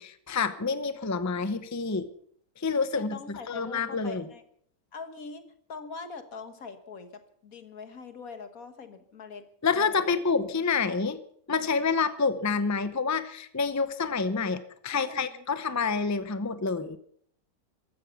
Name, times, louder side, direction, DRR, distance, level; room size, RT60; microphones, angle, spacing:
voice 1, 0.0-2.1 2.6-4.3 9.6-11.2 11.5-17.0, left 5 dB, 15° left, 12 dB, 0.6 m, -28 dB
voice 2, 2.9-4.4 4.9-10.2 14.9-15.5, left 4 dB, 65° left, 9 dB, 1.9 m, -43 dB
15.0 x 13.0 x 7.0 m, 0.64 s
omnidirectional pair, 1.6 m